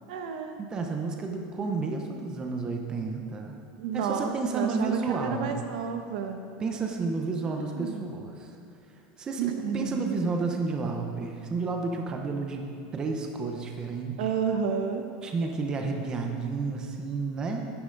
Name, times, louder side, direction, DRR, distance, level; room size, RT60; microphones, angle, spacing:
voice 1, 0.1-0.6 3.8-6.4 7.5-8.0 9.4-10.2 14.2-15.0, right 6 dB, 75° right, 5 dB, 1.1 m, -31 dB
voice 2, 0.6-3.6 3.9-5.5 6.6-8.5 9.2-12.7 12.9-14.3 15.2-17.7, right 4 dB, 20° right, 2 dB, 0.8 m, -31 dB
12.0 x 9.5 x 4.0 m, 2.7 s
supercardioid pair, 170°, 4 cm